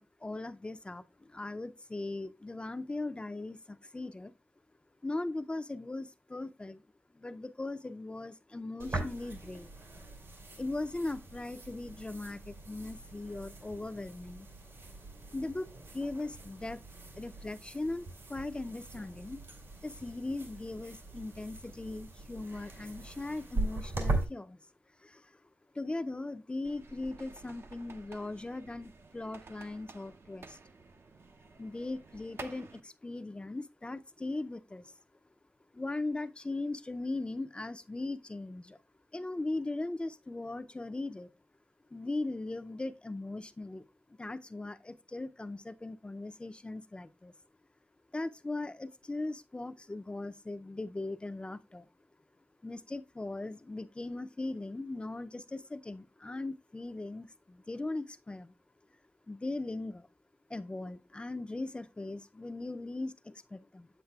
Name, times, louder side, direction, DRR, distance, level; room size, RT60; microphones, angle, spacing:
voice 1, 0.0-4.3 5.0-6.8 7.1-9.7 10.6-14.5 15.3-16.8 17.1-19.4 19.8-24.6 25.0-25.4 25.7-30.6 31.6-34.9 35.7-38.8 39.1-41.3 41.9-43.9 44.2-47.3 48.1-51.9 52.6-58.5 59.3-60.1 60.5-63.9, left 2 dB, 25° left, 0.4 m, -39 dB
sound 1, 8.8-24.2, right 2 dB, 90° right, 2.5 m, -40 dB
sound 2, 26.6-32.8, right 4 dB, 70° right, 0.6 m, -52 dB
8.5 x 8.0 x 2.3 m
wide cardioid pair, 110°, 4 cm